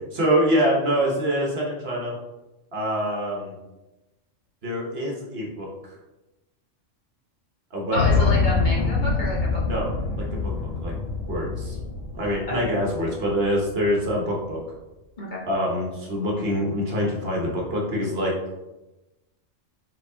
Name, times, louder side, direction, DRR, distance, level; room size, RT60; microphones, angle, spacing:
voice 1, 0.1-2.1 2.7-3.5 4.6-5.7 7.7-8.3 9.6-10.9 11.3-11.8 12.1-14.6 15.5-18.3, equal, 55° right, -2 dB, 1.2 m, -25 dB
sound 1, 7.9-14.0, left 4 dB, 65° left, 0.9 m, -25 dB
voice 2, 7.9-9.6 12.5-12.7 15.2-15.4, left 2 dB, 40° left, -5 dB, 1.1 m, -29 dB
4.5 x 4.0 x 2.7 m, 1.0 s
omnidirectional pair, 1.3 m